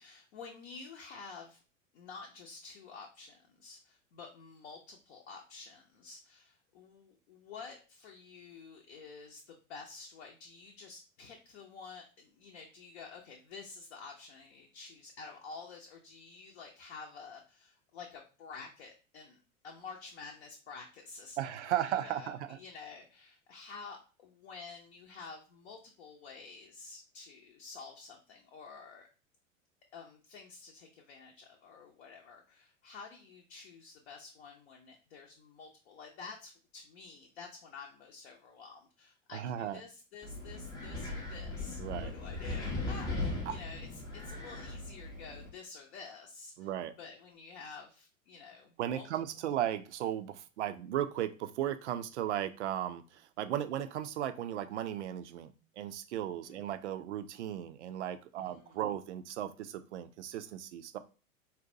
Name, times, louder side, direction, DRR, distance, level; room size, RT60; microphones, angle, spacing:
voice 1, 0.0-1.6 1.9-29.1 29.9-46.7 47.0-49.1 56.4-56.7 58.4-58.8, left 4 dB, 50° left, 0 dB, 0.7 m, -50 dB
voice 2, 21.4-22.6 39.3-39.8 41.8-42.1 43.5-43.6 46.6-46.9 48.8-61.0, right 11 dB, 60° right, 10 dB, 0.5 m, -36 dB
Wind, 40.2-45.5, left 2 dB, 10° left, 0.5 m, -38 dB
4.0 x 2.1 x 2.6 m, 0.34 s
figure-of-eight pair, 90°, 41 cm